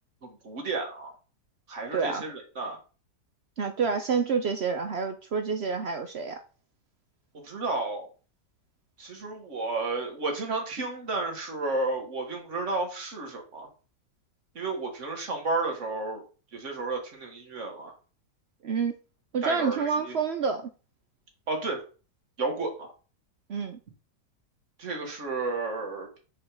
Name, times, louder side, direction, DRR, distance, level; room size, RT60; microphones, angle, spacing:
voice 1, 0.2-1.1 1.7-2.8 7.3-8.1 9.0-13.7 14.5-16.2 16.5-18.0 19.4-20.2 21.5-21.8 22.4-22.9 24.8-26.2, right 3 dB, 45° right, 2.0 m, -32 dB
voice 2, 1.9-2.2 3.6-6.4 18.6-19.0 19.3-20.7 23.5-23.8, right 5 dB, 75° right, 0.6 m, -28 dB
5.4 x 4.9 x 4.7 m
omnidirectional pair, 1.9 m